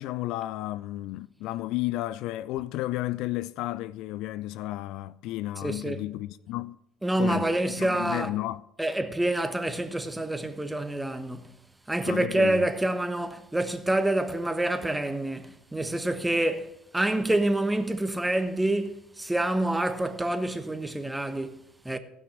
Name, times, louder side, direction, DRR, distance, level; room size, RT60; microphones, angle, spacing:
voice 1, 0.0-6.8 7.2-7.5 7.8-8.6 12.1-12.6, left 16 dB, 65° left, 0.3 m, -32 dB
voice 2, 5.6-6.0 7.0-8.3 8.8-11.6 11.9-22.0, right 1 dB, 10° right, 1.1 m, -27 dB
15.0 x 6.1 x 6.4 m
hypercardioid pair, 70°, 0 cm